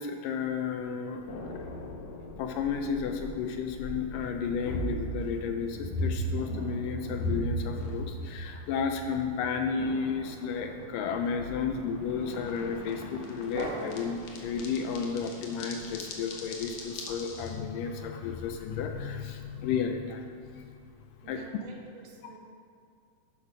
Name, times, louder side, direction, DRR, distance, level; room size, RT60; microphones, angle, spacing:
voice 1, 0.0-1.3 2.4-20.7 21.3-21.4, left 6 dB, 80° left, 5 dB, 2.1 m, -33 dB
sound 1, 1.3-17.5, equal, 60° left, 2.3 m, -38 dB
sound 2, 5.8-7.9 9.8-11.1 13.5-14.5, right 2 dB, 90° right, 3.8 m, -42 dB
voice 2, 21.2-22.4, right 5 dB, 65° right, 0 dB, 2.7 m, -49 dB
11.5 x 8.9 x 4.9 m, 2.3 s
omnidirectional pair, 4.3 m